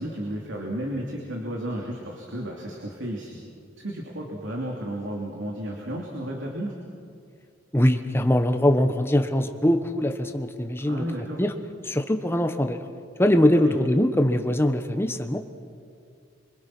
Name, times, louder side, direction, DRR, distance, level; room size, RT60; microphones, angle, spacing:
voice 1, 0.0-3.4 3.8-6.7 10.8-11.4 13.5-13.7, right 1 dB, 75° right, -1 dB, 3.0 m, -33 dB
voice 2, 7.7-11.0 11.4-11.5 11.8-12.8 13.2-15.4, left 1 dB, 10° left, 6 dB, 1.2 m, -22 dB
26.5 x 24.5 x 6.1 m, 2.3 s
head